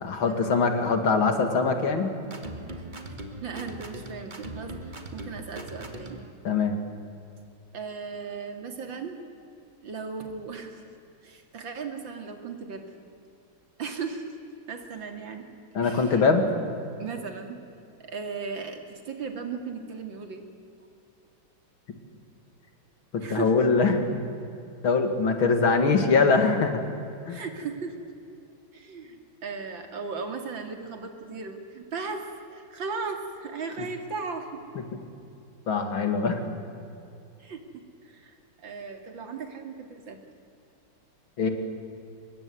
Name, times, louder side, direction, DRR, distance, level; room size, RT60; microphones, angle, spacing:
voice 1, 0.0-2.1 6.4-6.8 15.7-16.5 23.1-24.2 24.8-26.8 27.3-27.4 35.7-36.5 41.4-41.5, left 4 dB, 80° left, 6 dB, 3.1 m, -23 dB
sound 1, 2.2-6.3, right 1 dB, 25° right, 2.0 m, -40 dB
voice 2, 3.4-6.2 7.7-9.2 9.8-10.8 11.2-12.8 13.8-14.3 14.7-15.5 15.8-16.3 17.0-17.6 18.0-20.4 23.2-23.5 27.3-27.9 28.7-34.8 37.4-40.2, right 5 dB, 65° right, 5 dB, 3.1 m, -37 dB
24.5 x 21.5 x 9.4 m, 2.6 s
omnidirectional pair, 2.2 m